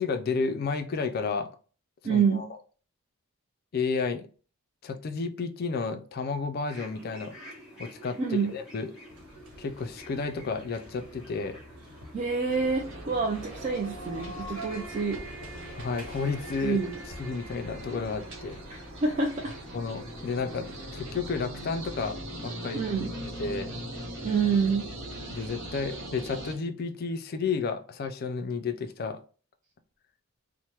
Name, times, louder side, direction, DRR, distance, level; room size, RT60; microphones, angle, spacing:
voice 1, 0.0-1.5 2.1-2.5 3.7-4.3 4.8-7.3 7.8-8.2 8.5-8.9 9.6-11.6 15.7-16.8 17.2-18.6 19.7-22.8 23.4-23.7 25.3-29.2, left 4 dB, 45° left, 9 dB, 0.3 m, -31 dB
voice 2, 2.0-2.4 8.2-8.5 12.1-15.2 16.6-17.0 18.7-19.5 22.7-23.1 24.2-24.9, right 5 dB, 35° right, 1 dB, 0.3 m, -27 dB
sound 1, 6.7-20.9, equal, ahead, 1.2 m, -50 dB
sound 2, 9.1-18.8, right 1 dB, 85° right, 1.0 m, -46 dB
sound 3, 12.5-26.6, equal, 60° right, 1.0 m, -41 dB
2.9 x 2.0 x 3.1 m, 0.39 s
head